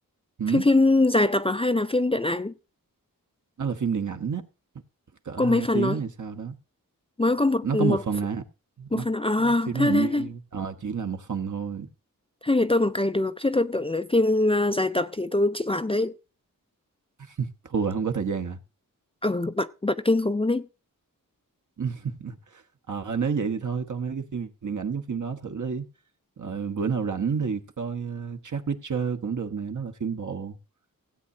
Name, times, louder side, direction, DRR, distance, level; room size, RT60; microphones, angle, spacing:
voice 1, 0.5-2.5 5.4-6.0 7.2-8.0 8.9-10.3 12.4-16.1 19.2-20.7, left 2 dB, 15° left, 0.4 m, -23 dB
voice 2, 3.6-4.5 5.2-6.5 7.6-8.4 8.8-9.1 9.4-11.9 17.3-18.6 21.8-22.6 22.9-25.8 26.4-30.6, right 6 dB, 60° right, 1.2 m, -29 dB
16.5 x 8.4 x 2.7 m
wide cardioid pair, 115°, 34 cm